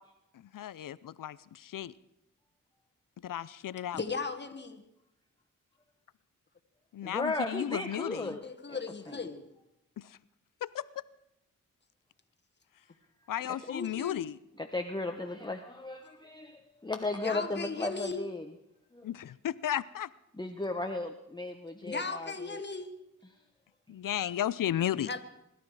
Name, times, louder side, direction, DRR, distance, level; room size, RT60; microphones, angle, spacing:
voice 1, 0.3-1.9 3.2-4.0 6.9-8.3 10.0-10.2 10.6-11.0 13.3-14.4 19.0-20.1 23.9-25.1, left 11 dB, 80° left, 19 dB, 0.6 m, -34 dB
voice 2, 3.9-4.8 8.2-9.5 13.7-14.2 17.2-18.3 21.8-22.9 24.9-25.2, left 4 dB, 35° left, 6 dB, 1.5 m, -37 dB
voice 3, 7.0-8.4 8.7-8.8 9.1-9.3 13.5-13.6 14.6-18.5 18.9-19.1 20.4-22.6, left 2 dB, 15° left, 4 dB, 1.1 m, -35 dB
23.0 x 12.0 x 4.9 m, 0.84 s
cardioid pair, 70°, 32 cm